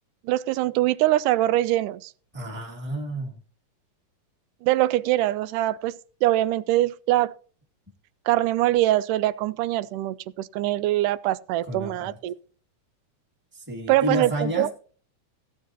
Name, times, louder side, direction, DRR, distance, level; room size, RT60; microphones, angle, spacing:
voice 1, 0.3-2.1 4.6-7.3 8.3-12.4 13.9-14.7, right 15 dB, 90° right, 2.2 m, -23 dB
voice 2, 2.3-3.3 11.7-12.1 13.5-14.7, equal, 5° right, 1.4 m, -30 dB
17.0 x 9.3 x 2.8 m
omnidirectional pair, 3.6 m